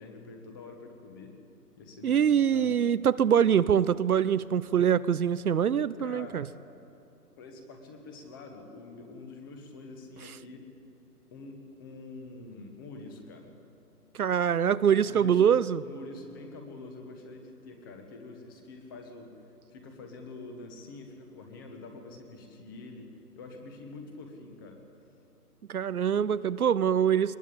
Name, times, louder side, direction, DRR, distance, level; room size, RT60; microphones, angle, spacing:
voice 1, 0.0-1.3 1.8-2.7 6.0-6.5 7.4-10.7 11.3-13.5 15.0-15.4 15.8-19.3 19.7-24.8, left 3 dB, 15° left, 4 dB, 1.2 m, -46 dB
voice 2, 2.0-6.5 14.2-15.8 25.7-27.4, right 8 dB, 65° right, 16 dB, 0.7 m, -24 dB
22.0 x 20.5 x 8.5 m, 2.6 s
hypercardioid pair, 160°, 48 cm